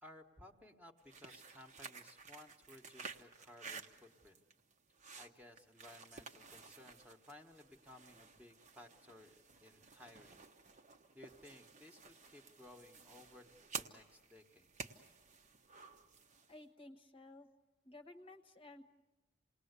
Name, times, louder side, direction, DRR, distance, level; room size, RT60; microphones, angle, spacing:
voice 1, 0.0-4.4 5.2-9.3 9.6-10.4 11.1-14.7, left 1 dB, 10° right, 4 dB, 1.3 m, -59 dB
sound 1, 1.0-16.6, right 4 dB, 40° right, 1.1 m, -53 dB
voice 2, 16.5-17.5 17.8-18.9, left 2 dB, 30° left, 5 dB, 1.1 m, -55 dB
28.5 x 19.5 x 8.2 m, 1.1 s
head